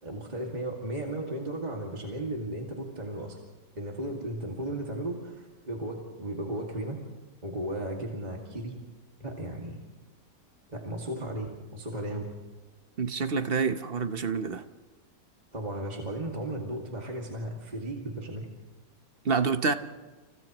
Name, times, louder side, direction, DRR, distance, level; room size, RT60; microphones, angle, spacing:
voice 1, 0.0-3.3 3.8-7.0 7.4-8.7 9.2-9.8 10.7-12.3 15.5-18.5, right 1 dB, 25° right, -1 dB, 2.3 m, -35 dB
voice 2, 13.0-14.6 19.2-19.7, right 5 dB, 40° right, 9 dB, 0.9 m, -27 dB
29.5 x 29.5 x 3.1 m, 1.3 s
omnidirectional pair, 1.9 m